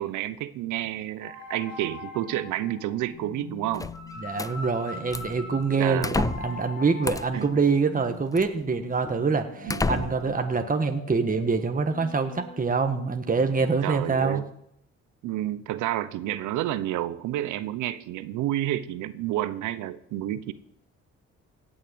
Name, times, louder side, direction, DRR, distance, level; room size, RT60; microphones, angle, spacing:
voice 1, 0.0-3.9 5.8-6.3 7.3-7.6 9.6-10.1 13.8-14.5 15.2-20.5, right 13 dB, 90° right, 15 dB, 0.8 m, -30 dB
sound 1, 1.2-13.9, left 3 dB, 60° left, 4.3 m, -42 dB
sound 2, 3.7-4.5 5.1-5.4 6.0-6.6 7.0-7.5 8.4-8.5 9.1-9.2 9.7-10.3, left 3 dB, 10° left, 0.5 m, -30 dB
voice 2, 4.2-14.4, right 4 dB, 30° right, 6 dB, 1.5 m, -25 dB
17.0 x 6.5 x 7.8 m, 0.72 s
supercardioid pair, 70°, 30 cm